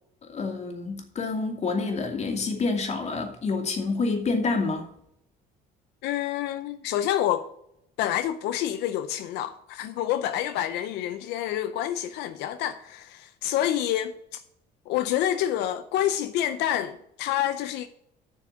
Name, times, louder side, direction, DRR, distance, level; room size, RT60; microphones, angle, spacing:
voice 1, 0.2-4.9, left 3 dB, 40° left, 2.4 m, -28 dB
voice 2, 6.0-7.5 8.0-14.4 14.9-17.9, left 11 dB, 85° left, 0.6 m, -28 dB
7.3 x 6.4 x 7.7 m
cardioid pair, 110°, 17 cm